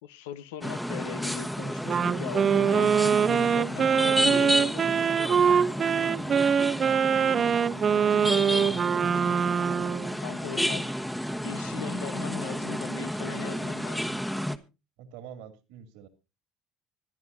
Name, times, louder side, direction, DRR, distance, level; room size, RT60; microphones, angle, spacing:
voice 1, 0.0-5.0 10.1-10.9 11.4-14.2, left 10 dB, 85° left, 0.9 m, -40 dB
sound 1, 0.6-14.6, equal, 5° left, 1.2 m, -31 dB
Wind instrument woodwind instrument, 1.9-10.1, right 7 dB, 40° right, 0.6 m, -24 dB
voice 2, 8.2-8.8 15.0-16.1, right 8 dB, 80° right, 2.5 m, -47 dB
25.5 x 9.8 x 2.6 m
supercardioid pair, 85°, 0 cm